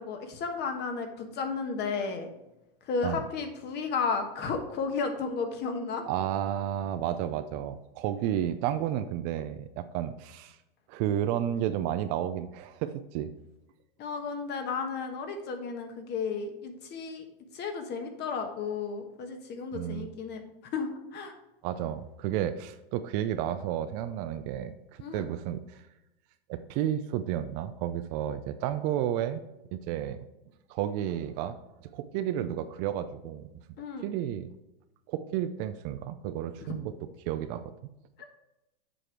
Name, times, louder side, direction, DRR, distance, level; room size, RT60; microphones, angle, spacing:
voice 1, 0.0-2.3 2.9-6.0 14.0-17.2 17.5-20.4 20.7-21.3 25.0-25.2 33.8-34.0 38.2-38.3, left 5 dB, 35° left, 5 dB, 1.3 m, -33 dB
voice 2, 6.1-10.6 10.9-13.3 19.7-20.1 21.6-25.8 26.5-29.4 29.7-30.2 30.7-33.5 34.0-34.5 35.1-36.9 37.3-37.6, right 11 dB, 45° right, 11 dB, 0.5 m, -32 dB
7.7 x 4.9 x 4.7 m, 0.95 s
hypercardioid pair, 120°, 30 cm